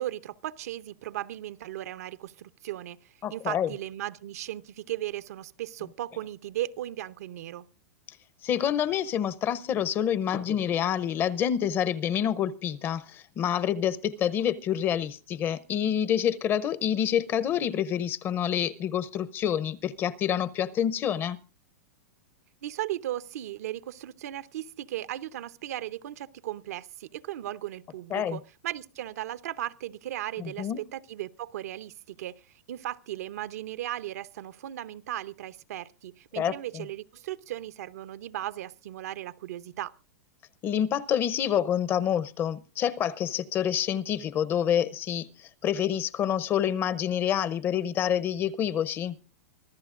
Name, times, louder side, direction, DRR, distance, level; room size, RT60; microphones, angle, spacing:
voice 1, 0.0-7.7 22.6-32.3 32.7-39.9, right 13 dB, 70° right, 0.7 m, -36 dB
voice 2, 3.2-3.7 8.4-21.4 28.1-28.4 30.4-30.8 36.4-36.8 40.6-49.2, left 9 dB, 25° left, 0.6 m, -27 dB
25.0 x 14.5 x 2.5 m
supercardioid pair, 145°, 9 cm